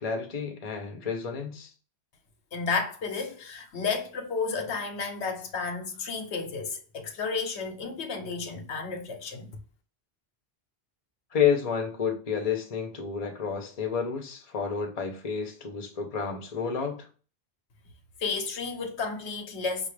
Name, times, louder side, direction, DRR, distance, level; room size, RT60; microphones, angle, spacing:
voice 1, 0.0-1.7 11.3-17.1, left 7 dB, 40° left, 0.8 m, -30 dB
voice 2, 2.5-9.5 18.2-19.9, left 4 dB, 90° left, 1.1 m, -32 dB
5.4 x 2.5 x 3.2 m
omnidirectional pair, 1.1 m